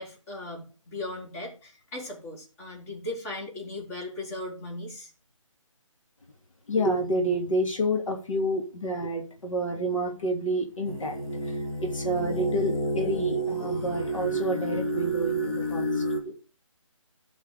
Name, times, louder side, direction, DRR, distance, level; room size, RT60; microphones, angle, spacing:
voice 1, 0.0-5.1, left 2 dB, 25° left, -2 dB, 4.2 m, -38 dB
voice 2, 6.7-16.3, right 1 dB, 75° left, 2 dB, 2.8 m, -29 dB
sound 1, 10.8-16.2, right 2 dB, 50° left, 3.1 m, -29 dB
13.5 x 5.6 x 5.1 m, 0.35 s
figure-of-eight pair, 155°, 17 cm